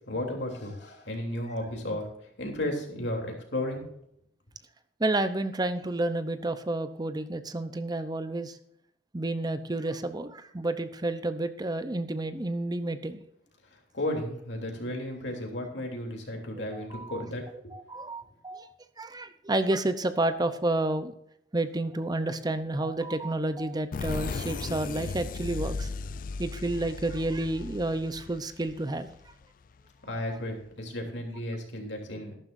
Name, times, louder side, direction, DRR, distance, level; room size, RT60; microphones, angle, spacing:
voice 1, 0.0-3.9 13.6-17.7 30.0-32.4, left 1 dB, 70° left, 1 dB, 3.2 m, -34 dB
voice 2, 5.0-8.6 9.1-13.2 16.6-17.2 17.7-18.7 19.0-21.1 21.5-25.9 26.4-29.1, right 2 dB, 20° right, 11 dB, 0.7 m, -30 dB
sound 1, 23.9-29.4, left 4 dB, 50° left, 0.4 m, -36 dB
14.0 x 12.0 x 2.6 m, 0.72 s
head